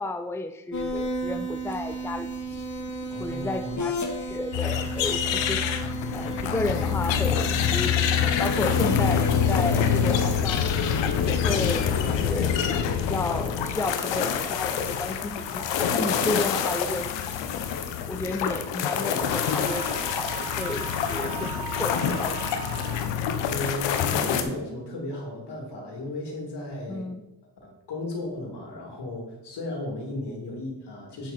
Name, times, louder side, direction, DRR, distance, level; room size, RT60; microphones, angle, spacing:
voice 1, 0.0-2.3 3.2-3.9 4.2-5.6 6.1-8.1 8.4-10.8 11.2-12.5 13.0-17.2 18.1-22.3 26.9-27.2, left 2 dB, 5° left, 7 dB, 0.6 m, -32 dB
sound 1, 0.7-11.2, right 1 dB, 40° left, 1.5 m, -33 dB
voice 2, 3.1-3.8 5.8-5.9 23.5-27.1 27.6-31.3, left 2 dB, 65° left, 0 dB, 2.9 m, -35 dB
sound 2, 4.5-24.4, left 8 dB, 85° left, 0.8 m, -26 dB
sound 3, 19.1-23.2, right 8 dB, 70° right, 0.9 m, -38 dB
8.5 x 6.4 x 4.3 m, 0.95 s
supercardioid pair, 50°, 43 cm